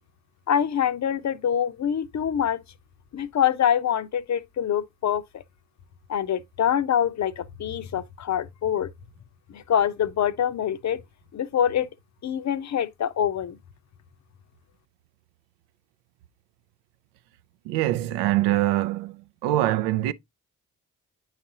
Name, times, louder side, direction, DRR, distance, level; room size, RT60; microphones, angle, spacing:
voice 1, 0.5-2.6 3.1-5.4 6.1-8.9 9.5-11.0 11.3-11.9 12.2-13.6, left 9 dB, 40° left, 0.6 m, -25 dB
voice 2, 17.6-20.1, right 15 dB, 75° right, 0.5 m, -24 dB
8.9 x 4.0 x 2.8 m
hypercardioid pair, 40°, 43 cm